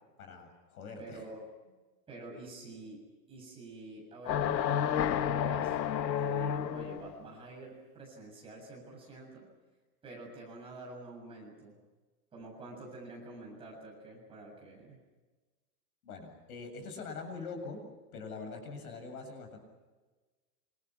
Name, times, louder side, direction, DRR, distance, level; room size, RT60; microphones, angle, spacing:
voice 1, 0.2-1.3 16.0-17.8 18.1-19.6, left 4 dB, 60° left, 6 dB, 7.8 m, -43 dB
voice 2, 1.0-1.5 2.1-3.0 3.3-9.5 10.0-11.8 12.3-15.0, right 2 dB, 10° right, -2 dB, 7.2 m, -48 dB
sound 1, 4.3-7.1, left 9 dB, 90° left, 1.5 m, -30 dB
27.5 x 27.0 x 6.1 m, 1.3 s
supercardioid pair, 180°, 49 cm